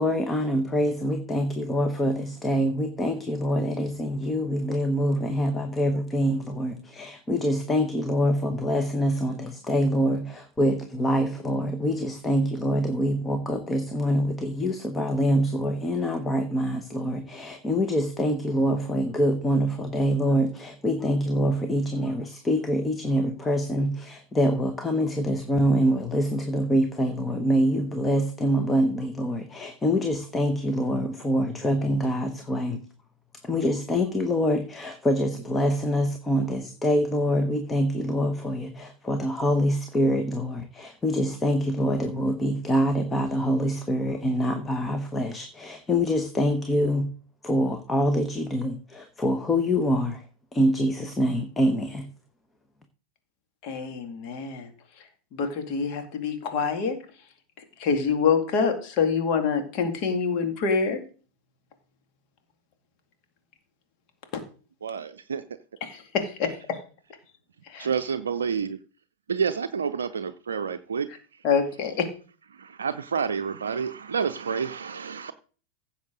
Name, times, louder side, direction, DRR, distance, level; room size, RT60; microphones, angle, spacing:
voice 1, 0.0-32.8 33.4-47.1 47.4-50.2 50.5-52.1, equal, 15° left, 7 dB, 1.2 m, -25 dB
voice 2, 53.6-54.7 55.3-57.0 57.8-61.0 65.8-66.8 67.7-67.9 71.4-72.1, left 5 dB, 40° left, 6 dB, 2.4 m, -26 dB
voice 3, 64.8-65.4 67.8-68.8 69.3-71.4 72.5-75.3, right 6 dB, 70° right, 9 dB, 0.6 m, -29 dB
15.5 x 7.2 x 3.9 m, 0.39 s
figure-of-eight pair, 90°, 0 cm